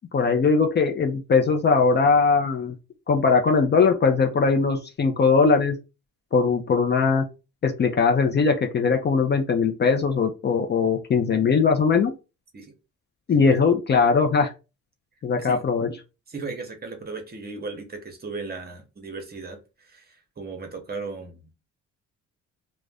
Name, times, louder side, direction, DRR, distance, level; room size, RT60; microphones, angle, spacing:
voice 1, 0.1-2.7 3.1-5.8 6.3-7.3 7.6-12.1 13.3-14.5 15.2-15.9, left 5 dB, 35° left, 4 dB, 0.5 m, -20 dB
voice 2, 16.3-21.5, right 4 dB, 30° right, 5 dB, 0.8 m, -36 dB
2.4 x 2.1 x 3.4 m, 0.29 s
cardioid pair, 90°, 30 cm